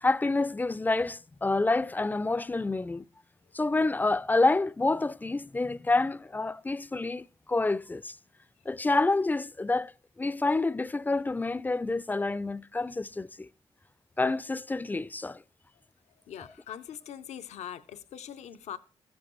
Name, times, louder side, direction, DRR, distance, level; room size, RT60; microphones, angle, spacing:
voice 1, 0.0-3.0 3.5-8.1 8.7-9.9 10.2-13.5 14.2-15.4, left 3 dB, 15° left, 0.3 m, -28 dB
voice 2, 16.3-18.8, left 9 dB, 80° left, 0.5 m, -42 dB
14.5 x 7.4 x 3.0 m
cardioid pair, 55°, 11 cm